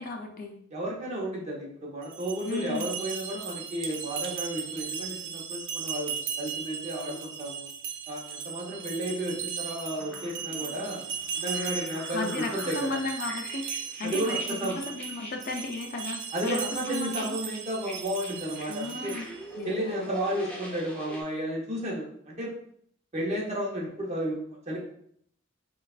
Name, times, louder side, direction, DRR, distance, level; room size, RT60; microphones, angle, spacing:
voice 1, 0.0-0.6 2.4-2.9 12.1-16.6 16.9-17.4 18.7-19.3 19.6-20.1, left 3 dB, 45° left, 2 dB, 0.5 m, -35 dB
voice 2, 0.7-7.7 8.1-11.0 11.3-13.0 14.0-14.8 16.3-19.1 19.7-22.5 23.1-24.8, right 1 dB, 35° right, -2 dB, 0.9 m, -33 dB
sound 1, 2.0-19.5, right 7 dB, 60° right, 0.5 m, -37 dB
sound 2, 10.0-21.2, equal, 5° left, 0.7 m, -44 dB
5.5 x 2.4 x 2.4 m, 0.66 s
head